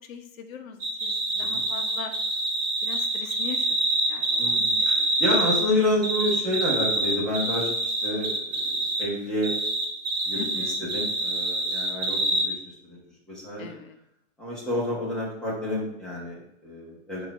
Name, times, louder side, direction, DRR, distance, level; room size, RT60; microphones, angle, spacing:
voice 1, 0.1-2.1 2.8-3.8 4.1-5.2 10.3-10.9 13.6-14.0, left 6 dB, 85° left, 6 dB, 1.1 m, -41 dB
sound 1, 0.8-5.7 6.0-9.1 9.4-12.4, right 2 dB, 25° right, 1.0 m, -26 dB
voice 2, 4.4-8.7 9.0-9.5 10.2-12.5 12.8-13.0 13.3-13.7 14.4-17.3, left 1 dB, ahead, -6 dB, 1.2 m, -29 dB
6.5 x 3.0 x 5.3 m, 0.82 s
supercardioid pair, 170°, 40 cm